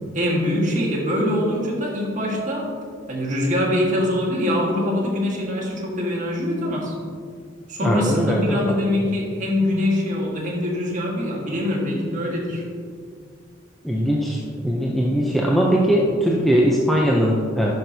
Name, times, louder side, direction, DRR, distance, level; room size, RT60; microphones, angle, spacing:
voice 1, 0.1-2.7 3.1-6.9 7.7-12.6, left 1 dB, 40° right, -3 dB, 1.5 m, -23 dB
voice 2, 7.8-8.8 13.8-17.7, equal, ahead, -4 dB, 0.5 m, -20 dB
11.0 x 5.9 x 2.7 m, 2.1 s
head